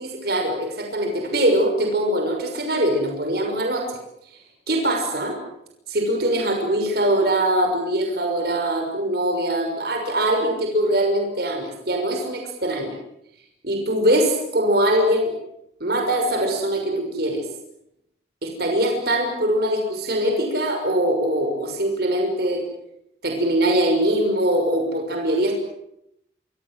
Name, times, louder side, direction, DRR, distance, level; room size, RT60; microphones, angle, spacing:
voice 1, 0.0-3.8 4.7-5.4 5.9-12.9 13.6-15.3 15.8-17.4 18.4-22.6 23.2-25.6, right 1 dB, 55° right, 2 dB, 6.2 m, -22 dB
27.0 x 25.0 x 7.7 m, 0.78 s
head